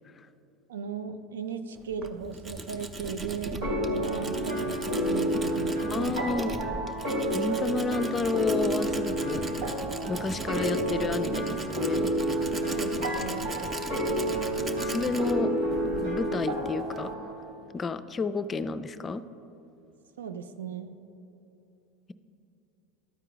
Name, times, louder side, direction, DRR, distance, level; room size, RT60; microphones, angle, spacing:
voice 1, 0.7-6.1 12.7-13.5 20.2-21.0, right 6 dB, 85° right, 9 dB, 0.5 m, -37 dB
Tools, 1.8-17.1, right 2 dB, 25° right, 0.6 m, -39 dB
sound 1, 3.6-17.3, equal, 70° right, 1.6 m, -30 dB
voice 2, 5.9-6.5 7.3-9.7 10.1-12.1 14.8-15.5 15.8-17.1 17.7-19.2, left 4 dB, 25° left, 12 dB, 0.4 m, -31 dB
12.5 x 4.5 x 3.9 m, 3.0 s
hypercardioid pair, 90°, 0 cm